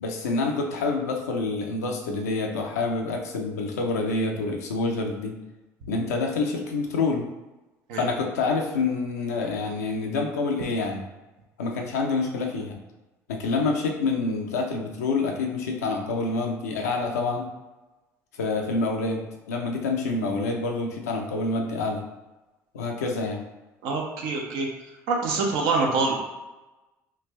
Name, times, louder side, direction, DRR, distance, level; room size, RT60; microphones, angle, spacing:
voice 1, 0.0-5.4 5.9-7.2 7.9-11.1 11.6-12.8 13.3-17.5 18.4-19.2 19.5-22.0 22.7-23.4, left 3 dB, 90° left, 1 dB, 0.5 m, -27 dB
voice 2, 23.8-24.7 25.1-26.2, right 3 dB, 70° right, 1 dB, 0.7 m, -25 dB
3.2 x 2.5 x 3.1 m, 1.1 s
hypercardioid pair, 65°, 8 cm